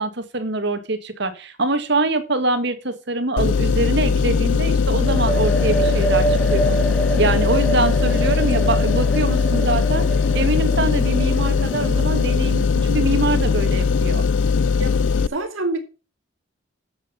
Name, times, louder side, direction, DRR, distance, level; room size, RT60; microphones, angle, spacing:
voice 1, 0.0-6.8 7.2-10.1 10.3-14.2, right 2 dB, 60° right, 1.9 m, -24 dB
sound 1, 3.4-15.3, left 5 dB, 65° left, 0.5 m, -19 dB
sound 2, 5.0-12.7, right 4 dB, 5° left, 1.5 m, -27 dB
voice 2, 14.7-15.8, right 2 dB, 90° right, 2.5 m, -28 dB
9.3 x 8.2 x 5.7 m
head